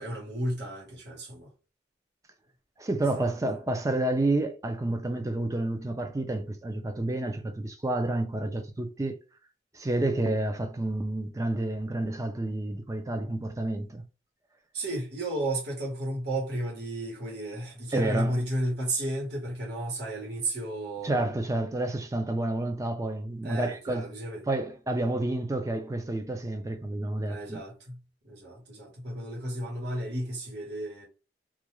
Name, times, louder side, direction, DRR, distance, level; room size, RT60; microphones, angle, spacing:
voice 1, 0.0-1.5 3.0-3.4 14.7-21.3 23.4-24.5 27.3-31.1, right 1 dB, 70° right, 1.2 m, -33 dB
voice 2, 2.8-9.2 9.7-14.0 17.9-18.4 21.0-24.1 24.5-27.6, right 2 dB, 20° right, 0.4 m, -29 dB
2.4 x 2.2 x 3.0 m
head